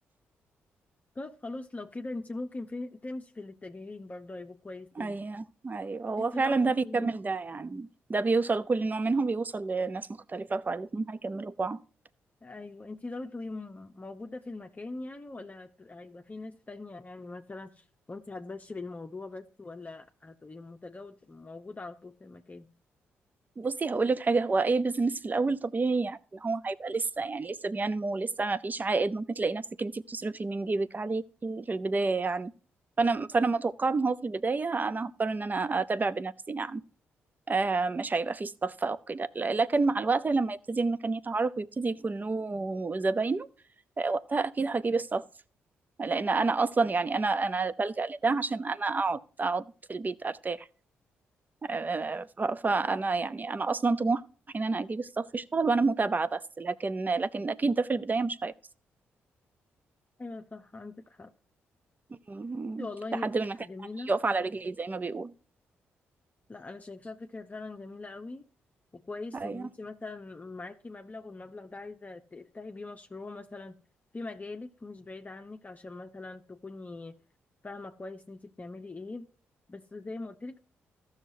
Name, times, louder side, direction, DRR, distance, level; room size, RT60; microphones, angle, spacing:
voice 1, 1.2-5.2 6.2-7.1 12.4-22.7 60.2-61.3 62.8-63.3 63.6-64.1 66.5-68.5 68.9-73.8 74.1-77.2 77.6-79.3 79.7-80.6, left 3 dB, 30° left, 0.7 m, -42 dB
voice 2, 5.0-11.8 23.6-32.5 33.0-36.8 37.5-43.5 44.0-45.2 46.0-50.7 51.6-54.2 54.5-58.5 62.3-62.9 63.1-63.6 64.1-65.3 69.3-69.7, right 3 dB, 30° right, 0.6 m, -29 dB
14.5 x 6.4 x 2.7 m
hypercardioid pair, 45°, 6 cm